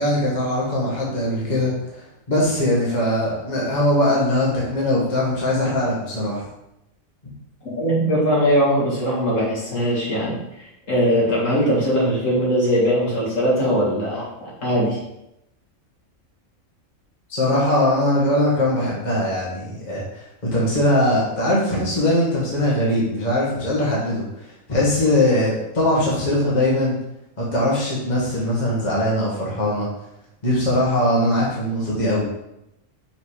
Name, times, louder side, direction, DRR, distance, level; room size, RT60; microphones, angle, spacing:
voice 1, 0.0-6.4 17.3-27.0 27.4-29.9 30.4-32.2, left 1 dB, 35° left, -6 dB, 1.7 m, -21 dB
voice 2, 7.7-15.0, equal, 70° left, -7 dB, 2.6 m, -20 dB
5.6 x 4.0 x 4.9 m, 0.86 s
omnidirectional pair, 1.4 m